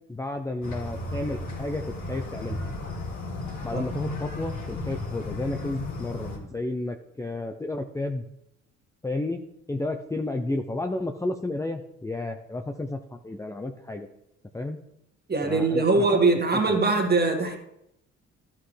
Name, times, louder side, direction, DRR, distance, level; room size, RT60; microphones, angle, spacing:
voice 1, 0.1-1.8 2.1-2.6 3.6-8.2 9.0-9.4 9.7-14.1 14.5-14.8 15.4-16.0, left 2 dB, 10° left, 5 dB, 0.6 m, -32 dB
sound 1, 0.6-6.4, left 2 dB, 55° left, 2.3 m, -34 dB
voice 2, 15.3-17.6, right 3 dB, 25° right, 2 dB, 2.0 m, -22 dB
12.5 x 5.9 x 3.3 m, 0.81 s
hypercardioid pair, 55°, 35 cm